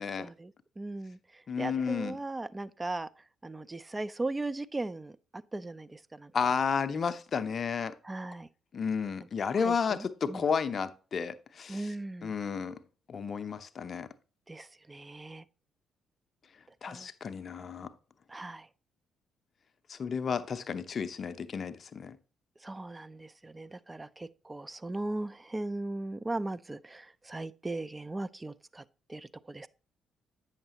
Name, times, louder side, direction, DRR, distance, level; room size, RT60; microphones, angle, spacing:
voice 1, 0.0-3.1 3.4-6.5 8.0-8.5 9.6-10.5 11.7-12.3 14.5-15.4 16.9-17.1 18.3-18.7 22.6-28.8 29.1-29.7, right 2 dB, 20° right, 0.4 m, -38 dB
voice 2, 1.5-2.2 6.3-7.9 8.7-11.9 12.2-12.8 13.1-14.1 16.8-17.9 19.9-22.2, left 6 dB, 45° left, 0.6 m, -32 dB
8.6 x 6.5 x 2.8 m
figure-of-eight pair, 45°, 0 cm